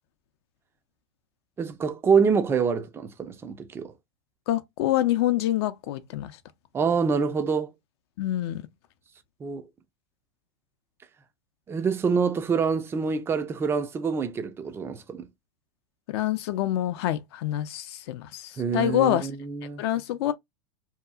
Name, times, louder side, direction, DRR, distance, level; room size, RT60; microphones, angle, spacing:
voice 1, 1.6-3.9 6.7-7.7 9.4-9.6 11.7-15.3 18.6-19.8, right 5 dB, 15° right, 0.4 m, -26 dB
voice 2, 4.5-6.3 8.2-8.6 16.1-19.3 19.8-20.3, left 13 dB, 55° left, 0.5 m, -26 dB
2.8 x 2.3 x 2.3 m
hypercardioid pair, 115°, 15 cm